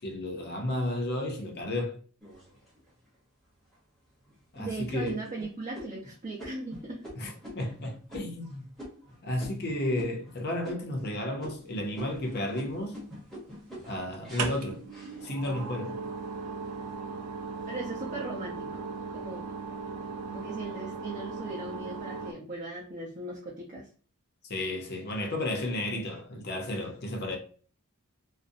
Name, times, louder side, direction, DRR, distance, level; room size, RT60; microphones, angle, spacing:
voice 1, 0.0-1.9 4.5-5.2 7.2-8.6 9.2-13.0 13.8-14.8 15.2-16.0 24.5-27.4, left 1 dB, 45° left, 0.6 m, -32 dB
sound 1, 2.2-3.1 3.7-3.8 4.2-4.6 5.0-10.4 10.6-11.1 11.4-15.7 16.2-16.7, equal, ahead, 0.8 m, -46 dB
voice 2, 4.5-7.0 17.7-18.8 19.1-19.5 20.3-23.9, right 2 dB, 35° right, 0.6 m, -38 dB
sound 2, 12.0-12.7 14.1-22.3, right 4 dB, 85° right, 0.4 m, -37 dB
2.5 x 2.0 x 2.5 m
head